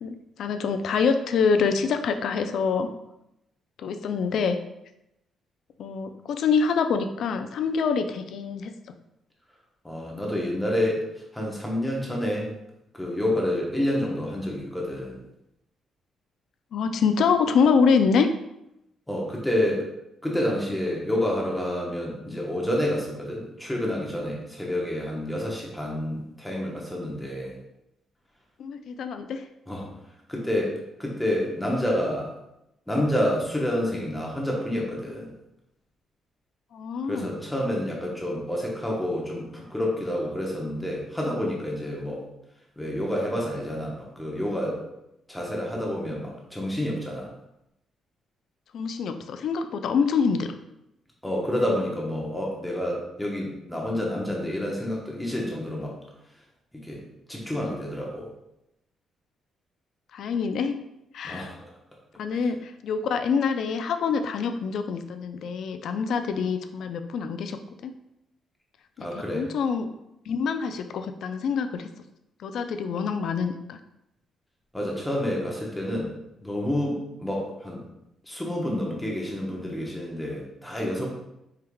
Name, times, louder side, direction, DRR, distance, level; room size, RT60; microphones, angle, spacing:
voice 1, 0.0-2.9 3.8-4.6 5.8-8.7 16.7-18.3 28.6-29.4 36.7-37.3 48.7-50.5 60.1-60.8 61.1-61.5 62.2-67.9 69.0-69.1 69.3-69.9 70.3-71.9 72.4-73.8, left 5 dB, 70° left, 8 dB, 0.3 m, -25 dB
voice 2, 9.8-11.0 11.3-12.5 12.9-15.2 19.1-19.9 20.2-27.6 29.7-29.9 30.3-32.3 32.9-35.3 37.1-42.2 42.8-44.8 45.3-47.3 51.2-56.0 56.7-57.0 57.3-58.3 61.2-61.7 69.0-69.5 74.7-76.1 76.4-77.8 78.2-81.1, left 1 dB, 5° left, -2 dB, 1.0 m, -28 dB
4.5 x 3.5 x 2.3 m, 0.86 s
cardioid pair, 90°, 0 cm